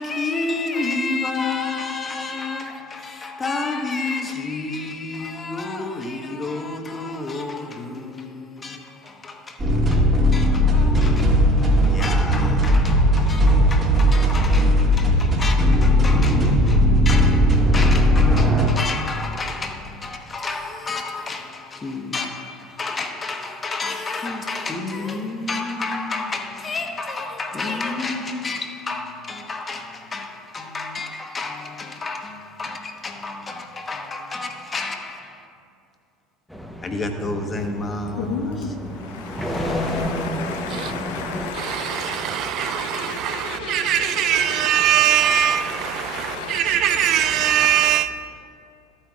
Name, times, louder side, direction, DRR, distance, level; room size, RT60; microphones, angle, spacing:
voice 1, 0.0-35.5 36.8-38.7 43.6-43.7 45.1-46.9 47.9-48.0, left 3 dB, 25° left, 1.1 m, -30 dB
sound 1, 9.6-18.7, equal, 30° right, 2.0 m, -17 dB
sound 2, 36.5-41.5, left 1 dB, ahead, 0.9 m, -30 dB
voice 2, 38.2-44.8 45.4-47.6, left 6 dB, 70° left, 0.7 m, -34 dB
voice 3, 41.5-48.2, right 10 dB, 55° right, 0.5 m, -21 dB
13.5 x 8.8 x 2.4 m
hypercardioid pair, 70°, 0 cm